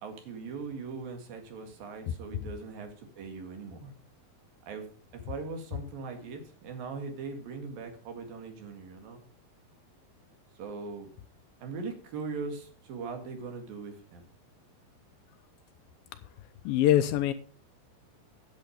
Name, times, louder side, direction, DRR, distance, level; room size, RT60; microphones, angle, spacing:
voice 1, 0.0-3.9 4.7-4.9 5.1-9.2 10.6-11.1 11.6-14.3, right 4 dB, 70° right, 5 dB, 3.6 m, -40 dB
voice 2, 16.7-17.3, left 12 dB, 80° left, 11 dB, 2.2 m, -23 dB
10.5 x 8.7 x 5.1 m, 0.40 s
omnidirectional pair, 4.4 m